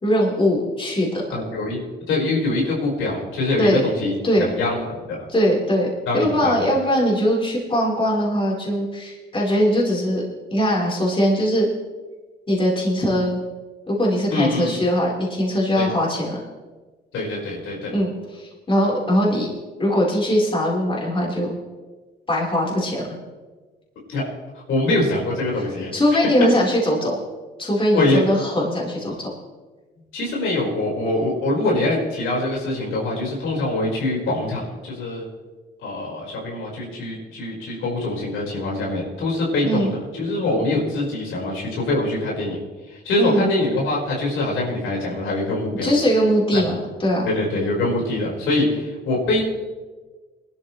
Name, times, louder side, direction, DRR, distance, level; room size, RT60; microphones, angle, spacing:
voice 1, 0.0-1.2 3.6-3.8 4.2-4.5 5.3-5.9 6.1-10.2 10.5-11.7 12.5-13.4 13.9-16.4 17.9-19.5 19.8-21.5 22.3-23.0 25.9-27.2 27.6-29.3 39.6-39.9 43.2-43.5 45.8-47.3, equal, 25° left, -4 dB, 4.4 m, -21 dB
voice 2, 1.3-1.8 2.1-5.2 6.1-6.6 14.3-14.8 15.8-15.9 17.1-17.9 24.1-24.2 24.5-25.9 27.9-28.2 30.1-35.3 35.8-42.6 42.9-45.9 46.5-46.6 47.2-49.5, left 2 dB, 85° left, -3 dB, 5.1 m, -24 dB
21.0 x 12.5 x 3.3 m, 1.3 s
cardioid pair, 90°, 20 cm